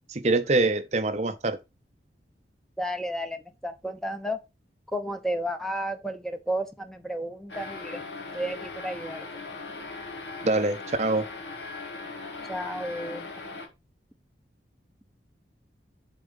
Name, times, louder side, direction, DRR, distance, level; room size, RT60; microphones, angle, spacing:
voice 1, 0.1-1.6 10.4-11.3, right 2 dB, 40° right, 0.6 m, -24 dB
voice 2, 2.8-4.4 4.9-8.0 8.3-9.3 12.5-13.3, equal, 5° left, 0.8 m, -32 dB
sound 1, 7.5-13.7, left 3 dB, 85° left, 2.0 m, -39 dB
7.3 x 4.0 x 5.2 m
head